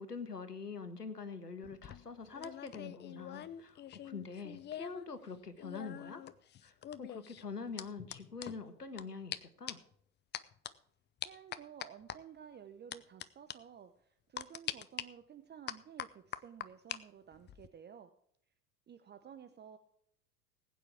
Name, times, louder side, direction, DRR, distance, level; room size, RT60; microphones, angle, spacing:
voice 1, 0.0-6.2 6.6-9.8, left 4 dB, 90° left, 10 dB, 1.5 m, -45 dB
sound 1, 1.6-5.0 5.3-9.0 9.3-9.4 9.7-9.9 10.3-10.7 11.2-12.2 12.9-13.2 13.5-13.6 14.4-15.0 15.7-17.0 17.3-17.7, left 11 dB, 25° left, 0.7 m, -44 dB
voice 2, 11.2-18.1 18.9-19.8, right 8 dB, 20° right, 10 dB, 0.9 m, -53 dB
20.0 x 9.2 x 3.5 m, 0.68 s
figure-of-eight pair, 80°, 46 cm